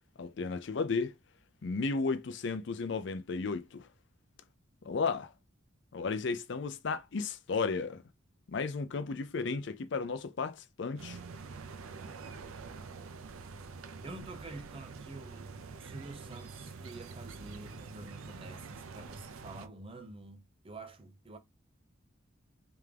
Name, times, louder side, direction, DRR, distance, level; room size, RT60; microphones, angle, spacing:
voice 1, 0.2-1.1 1.6-3.8 4.9-5.3 5.9-8.0 8.5-11.2, left 4 dB, 55° left, 0.5 m, -34 dB
sound 1, 11.0-19.7, right 4 dB, 85° right, 0.5 m, -46 dB
voice 2, 14.0-21.4, right 2 dB, 25° right, 0.6 m, -48 dB
3.5 x 3.4 x 3.3 m
head